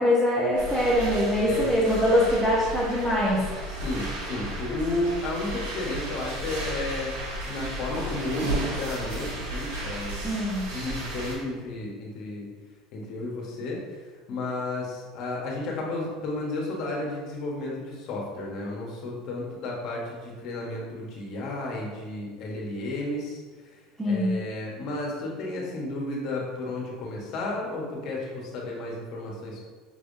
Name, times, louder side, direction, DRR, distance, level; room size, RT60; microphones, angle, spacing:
voice 1, 0.0-3.4 10.2-10.6 24.0-24.4, left 1 dB, 10° right, -8 dB, 1.1 m, -23 dB
sound 1, 0.5-11.4, right 1 dB, 90° right, 1.4 m, -34 dB
voice 2, 3.7-7.2 7.4-10.2 10.7-12.5 12.9-13.8 14.3-23.4 24.0-29.6, left 2 dB, 60° left, -2 dB, 1.2 m, -32 dB
5.6 x 3.4 x 2.7 m, 1.4 s
supercardioid pair, 115°, 0 cm